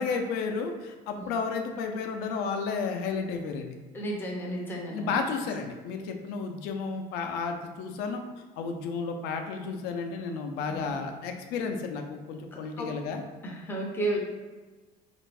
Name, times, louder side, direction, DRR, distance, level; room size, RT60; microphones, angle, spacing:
voice 1, 0.0-3.7 4.9-8.2 8.6-13.2, left 5 dB, 70° left, 4 dB, 0.4 m, -32 dB
voice 2, 3.9-5.2 10.7-10.9 12.5-12.9 13.4-14.2, right 1 dB, 10° left, -2 dB, 0.5 m, -33 dB
3.4 x 2.5 x 3.2 m, 1.3 s
cardioid pair, 180°, 17 cm